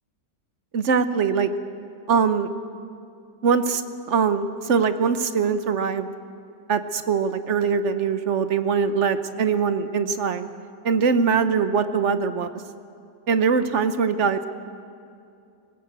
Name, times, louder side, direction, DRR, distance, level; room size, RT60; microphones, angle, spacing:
voice 1, 0.7-1.5 2.1-2.5 3.4-3.8 4.1-6.1 6.7-10.5 10.8-12.5 13.3-14.4, right 6 dB, 50° right, 10 dB, 1.0 m, -22 dB
20.5 x 18.5 x 8.0 m, 2.5 s
omnidirectional pair, 1.9 m